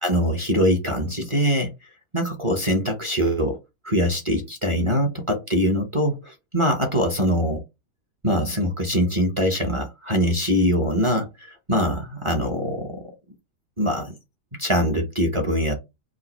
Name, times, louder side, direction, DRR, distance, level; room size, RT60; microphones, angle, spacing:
voice 1, 0.0-1.7 2.1-3.6 3.8-7.6 8.2-13.1 13.8-14.2 14.6-15.8, equal, 25° right, 0.7 m, -23 dB
5.0 x 2.2 x 4.4 m
omnidirectional pair, 1.7 m